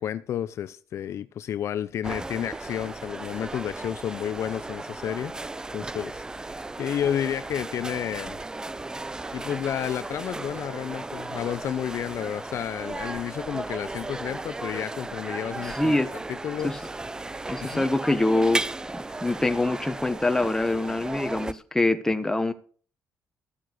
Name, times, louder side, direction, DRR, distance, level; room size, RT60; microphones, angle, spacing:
voice 1, 0.0-5.3 5.7-6.5 6.8-8.4 9.3-15.9 16.3-16.8 17.6-17.9, left 10 dB, 60° left, 0.6 m, -31 dB
sound 1, 2.0-21.5, right 2 dB, 15° right, 0.5 m, -35 dB
voice 2, 15.7-16.1 16.6-16.8 17.5-18.6 18.9-22.5, left 2 dB, 10° left, 1.2 m, -24 dB
14.0 x 7.6 x 6.3 m
cardioid pair, 125°, 5 cm